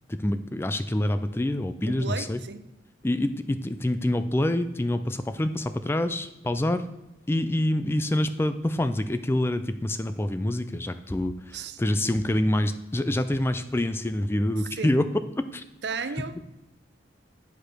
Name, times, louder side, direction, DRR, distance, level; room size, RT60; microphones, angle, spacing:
voice 1, 0.1-2.4 3.0-6.9 7.3-15.1 15.4-15.6, left 1 dB, 15° left, 0.3 m, -26 dB
voice 2, 1.9-2.7 11.5-11.8 14.7-14.9 15.8-16.4, right 5 dB, 65° right, 0.6 m, -34 dB
8.2 x 5.2 x 6.0 m
head